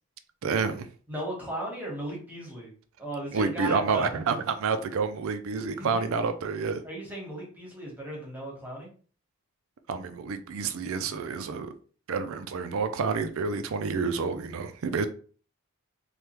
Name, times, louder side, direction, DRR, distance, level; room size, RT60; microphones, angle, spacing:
voice 1, 0.4-0.9 3.3-6.8 9.9-11.7 12.1-15.1, right 5 dB, 60° right, 0.4 m, -29 dB
voice 2, 1.1-2.7 3.0-4.1 5.8-6.1 6.8-8.9 14.8-15.0, right 1 dB, 10° right, 1.0 m, -36 dB
3.3 x 2.3 x 3.0 m
head